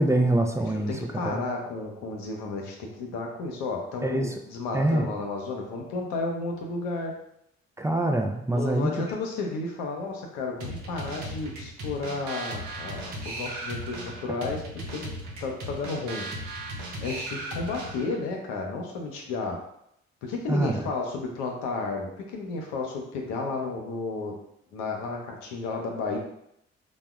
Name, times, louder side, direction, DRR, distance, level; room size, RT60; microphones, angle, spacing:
voice 1, 0.0-1.4 4.0-4.3 4.7-5.1 7.8-9.0 20.5-20.9, right 1 dB, 10° right, 3 dB, 0.3 m, -25 dB
voice 2, 0.7-7.2 8.5-14.6 14.9-15.1 15.4-16.3 17.0-19.6 20.2-24.4 24.7-26.2, left 3 dB, 90° left, 1 dB, 0.5 m, -32 dB
sound 1, 10.6-18.2, right 1 dB, 80° right, 0.6 m, -37 dB
3.3 x 2.1 x 2.3 m, 0.76 s
hypercardioid pair, 45°, 29 cm